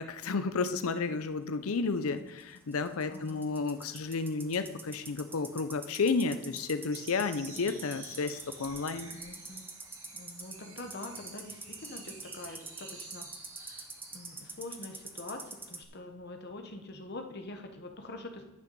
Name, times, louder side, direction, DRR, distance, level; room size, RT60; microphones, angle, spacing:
voice 1, 0.0-9.1, left 4 dB, 80° left, 10 dB, 0.6 m, -32 dB
sound 1, 2.4-15.9, right 3 dB, 10° right, 0.5 m, -45 dB
voice 2, 3.1-3.5 9.1-9.7 10.1-18.4, left 2 dB, 50° left, 5 dB, 1.0 m, -45 dB
sound 2, 6.9-14.5, right 3 dB, 75° right, 2.3 m, -51 dB
10.5 x 6.0 x 5.3 m, 0.95 s
head